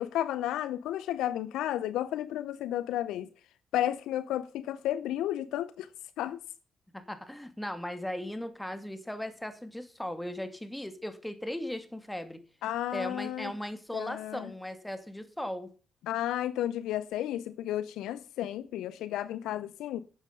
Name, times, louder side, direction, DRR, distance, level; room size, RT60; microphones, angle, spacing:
voice 1, 0.0-3.3 3.7-5.9 6.2-6.4 12.6-13.5 13.9-14.5 16.1-20.0, left 12 dB, 75° left, 0.6 m, -32 dB
voice 2, 6.9-12.4 12.9-15.7, left 1 dB, 10° left, 2.4 m, -37 dB
11.5 x 8.2 x 5.2 m
hypercardioid pair, 45°, 0 cm